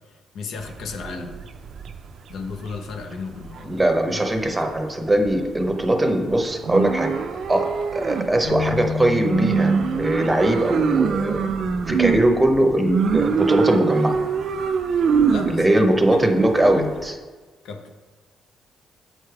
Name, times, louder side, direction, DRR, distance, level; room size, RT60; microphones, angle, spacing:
voice 1, 0.3-1.3 2.3-3.8 4.1-4.6 15.3-15.6 16.1-16.9 17.6-17.9, left 4 dB, 75° left, 5 dB, 0.6 m, -34 dB
sound 1, 0.6-3.0 3.4-4.0 4.2-4.8 5.2-5.8 6.3-17.1, right 6 dB, 60° right, 0.4 m, -24 dB
voice 2, 3.6-7.2 7.5-11.5 11.9-14.2 15.5-17.1, right 1 dB, 15° right, 4 dB, 0.7 m, -21 dB
Bass guitar, 8.4-14.7, left 5 dB, 40° left, 0.8 m, -34 dB
7.5 x 3.3 x 4.6 m, 1.3 s
cardioid pair, 90°, 0 cm